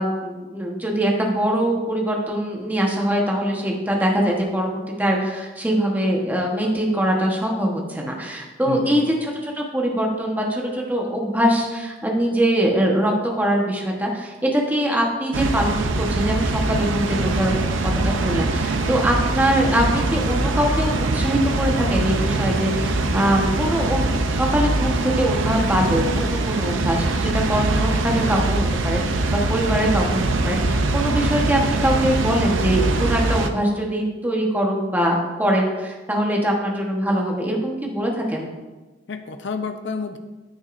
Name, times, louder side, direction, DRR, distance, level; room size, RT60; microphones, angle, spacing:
voice 1, 0.0-17.6 17.8-38.5, equal, 10° right, -1 dB, 1.2 m, -23 dB
voice 2, 8.7-9.1 18.7-18.9 39.1-40.2, left 4 dB, 65° left, 7 dB, 0.7 m, -30 dB
Water, 15.3-33.5, right 2 dB, 90° right, 0.6 m, -22 dB
9.2 x 9.0 x 2.6 m, 1.2 s
head